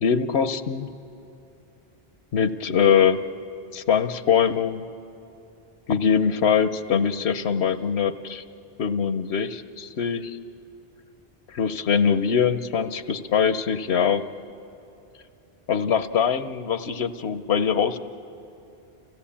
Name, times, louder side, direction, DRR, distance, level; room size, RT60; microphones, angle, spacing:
voice 1, 0.0-0.9 2.3-3.2 3.7-4.9 5.9-8.4 8.8-10.4 11.5-14.3 15.7-18.0, left 7 dB, 90° left, 12 dB, 1.1 m, -22 dB
29.5 x 17.0 x 8.6 m, 2.8 s
omnidirectional pair, 1.1 m